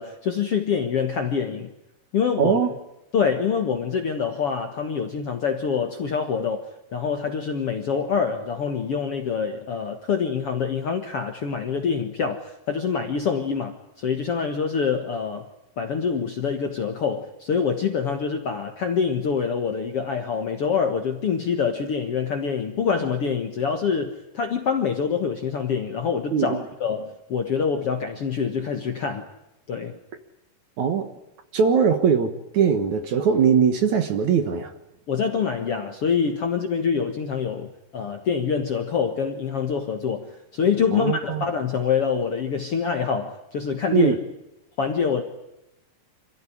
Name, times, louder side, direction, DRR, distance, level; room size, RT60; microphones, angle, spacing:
voice 1, 0.0-1.7 2.1-2.6 3.1-6.6 6.9-15.5 15.8-29.3 29.7-30.0 35.1-44.1 44.8-45.2, left 6 dB, 55° left, 1.7 m, -25 dB
voice 2, 2.4-2.7 26.3-26.6 30.8-31.1 31.5-34.7 40.9-41.4 43.9-44.2, right 7 dB, 60° right, 2.3 m, -21 dB
27.0 x 16.0 x 9.9 m
omnidirectional pair, 4.6 m